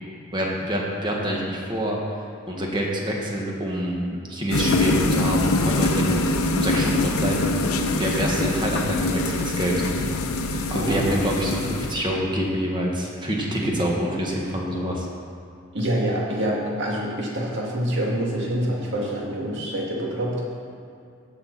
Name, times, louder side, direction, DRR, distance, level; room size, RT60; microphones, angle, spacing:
voice 1, 0.3-2.0 2.5-6.2 6.5-9.8 10.5-15.1, equal, 20° right, -2 dB, 1.5 m, -26 dB
sound 1, 4.5-12.0, left 2 dB, 90° left, 0.8 m, -24 dB
voice 2, 10.7-11.1 15.7-20.4, right 1 dB, 60° right, -3 dB, 2.1 m, -26 dB
15.5 x 6.1 x 4.1 m, 2.5 s
head